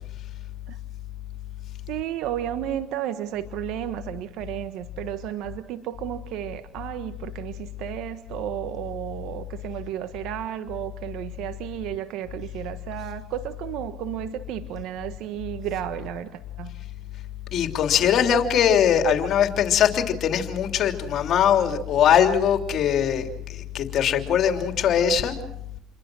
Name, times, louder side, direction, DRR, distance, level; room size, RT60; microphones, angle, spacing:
voice 1, 1.9-16.7, right 12 dB, 70° right, 10 dB, 1.3 m, -33 dB
voice 2, 17.5-25.4, left 8 dB, 60° left, 6 dB, 3.1 m, -21 dB
29.0 x 22.5 x 6.3 m, 0.76 s
supercardioid pair, 75°, 0 cm